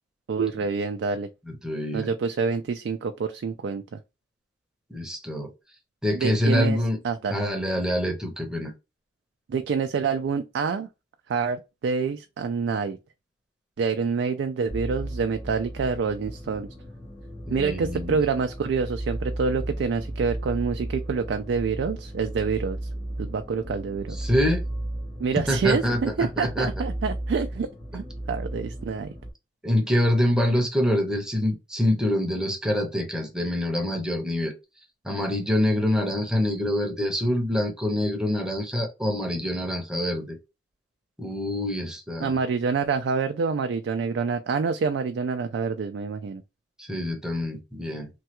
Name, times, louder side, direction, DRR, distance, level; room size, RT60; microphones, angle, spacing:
voice 1, 0.3-1.3 1.9-4.0 6.1-6.8 7.0-7.4 9.5-10.9 11.3-13.0 13.8-16.7 17.5-22.8 23.2-24.3 25.2-27.7 27.9-29.1 42.2-46.4, right 5 dB, 85° right, 0.3 m, -27 dB
voice 2, 1.5-2.1 4.9-5.5 6.0-7.0 7.3-8.7 17.5-18.2 24.2-24.6 25.5-26.7 29.6-34.5 35.0-40.4 41.2-42.4 46.8-48.1, left 1 dB, 5° right, 0.7 m, -25 dB
sound 1, 14.7-29.3, right 1 dB, 35° left, 1.2 m, -35 dB
3.2 x 2.3 x 2.9 m
head